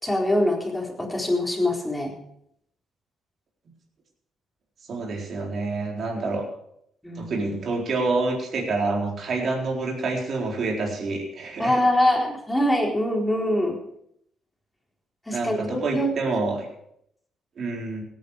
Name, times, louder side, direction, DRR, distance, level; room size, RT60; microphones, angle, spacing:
voice 1, 0.0-2.1 7.0-7.4 11.6-13.8 15.3-16.1, left 1 dB, 10° left, -1 dB, 4.2 m, -23 dB
voice 2, 4.9-6.5 7.2-11.8 15.3-16.7 17.6-18.0, right 3 dB, 55° right, 0 dB, 3.9 m, -27 dB
17.5 x 9.6 x 5.0 m, 0.72 s
cardioid pair, 90°, 0 cm